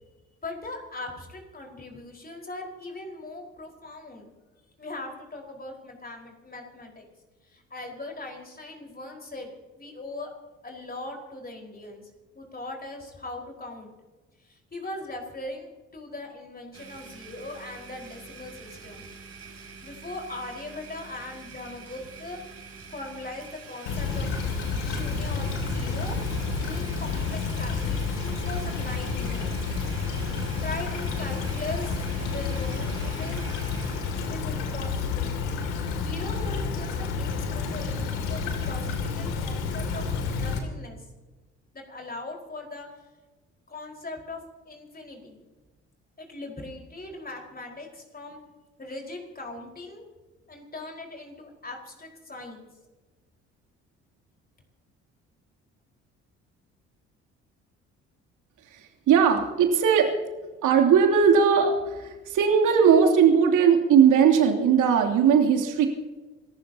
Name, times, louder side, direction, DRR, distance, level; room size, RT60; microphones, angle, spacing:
voice 1, 0.4-4.3 4.8-7.0 7.4-10.3 10.6-12.0 12.3-13.9 14.4-19.0 19.6-22.4 22.9-24.3 24.8-26.2 26.6-29.5 30.6-33.5 34.2-35.4 36.0-41.0 41.7-42.9 43.7-44.4 44.7-45.4 46.2-48.4 48.8-50.1 50.5-52.7, left 2 dB, 25° left, 0 dB, 4.8 m, -40 dB
Domestic sounds home sounds, 16.7-34.4, right 5 dB, 45° right, 6.2 m, -46 dB
Stream / Trickle dribble, 23.9-40.6, left 4 dB, 75° left, 2.6 m, -30 dB
voice 2, 58.7-60.1 60.6-65.9, right 7 dB, 65° right, 2 dB, 3.1 m, -19 dB
27.5 x 14.5 x 2.9 m, 1.2 s
hypercardioid pair, 50°, 34 cm